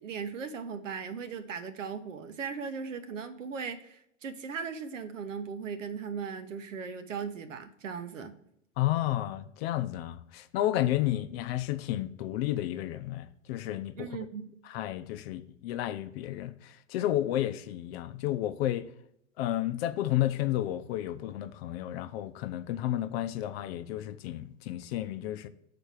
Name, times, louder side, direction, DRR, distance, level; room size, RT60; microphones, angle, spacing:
voice 1, 0.0-8.3 14.0-14.5, right 6 dB, 80° right, 1.0 m, -38 dB
voice 2, 8.8-14.1 14.6-18.9 19.4-25.5, left 13 dB, 55° left, 0.7 m, -32 dB
6.8 x 4.3 x 6.3 m
hypercardioid pair, 100°, 37 cm